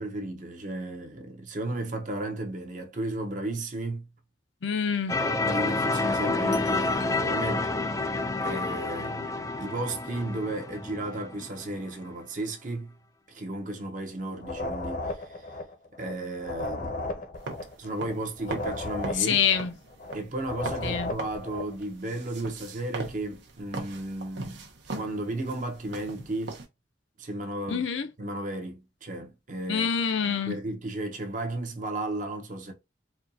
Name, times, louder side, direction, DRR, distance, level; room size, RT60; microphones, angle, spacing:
voice 1, 0.0-4.1 5.5-7.7 8.4-12.9 13.3-15.2 16.0-17.1 17.8-19.4 20.1-24.6 24.9-26.6 27.2-27.8 28.2-29.9 30.2-32.7, right 2 dB, 45° right, 0.8 m, -34 dB
voice 2, 4.6-5.2 19.2-19.8 20.8-21.1 27.7-28.1 29.7-30.6, left 7 dB, 85° left, 0.6 m, -26 dB
sound 1, 5.1-11.9, left 3 dB, 15° left, 0.3 m, -29 dB
sound 2, 14.4-21.7, left 2 dB, 45° left, 0.7 m, -35 dB
sound 3, 17.4-26.7, right 3 dB, 75° right, 0.9 m, -41 dB
4.3 x 2.3 x 2.6 m
head